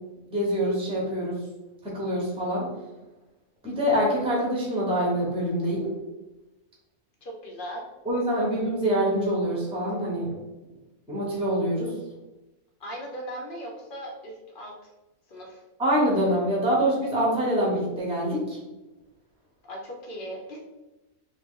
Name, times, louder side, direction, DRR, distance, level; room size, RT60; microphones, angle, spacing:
voice 1, 0.3-1.3 1.8-2.7 3.6-5.9 8.0-10.3 11.1-11.9 15.8-18.6, equal, 5° right, -4 dB, 0.8 m, -25 dB
voice 2, 7.2-7.8 12.8-14.8 15.3-15.6 19.6-20.6, equal, 50° left, -1 dB, 0.7 m, -38 dB
2.9 x 2.8 x 3.6 m, 1.0 s
omnidirectional pair, 1.5 m